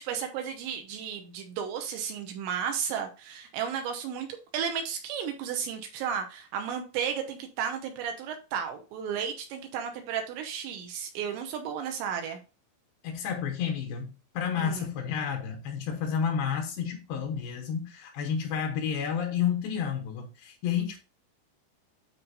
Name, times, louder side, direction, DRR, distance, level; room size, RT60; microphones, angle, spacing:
voice 1, 0.0-4.3 4.5-12.4 14.6-14.9, right 7 dB, 75° right, 2.8 m, -33 dB
voice 2, 13.0-21.0, left 7 dB, 85° left, 2.1 m, -30 dB
12.5 x 4.2 x 2.7 m
omnidirectional pair, 5.7 m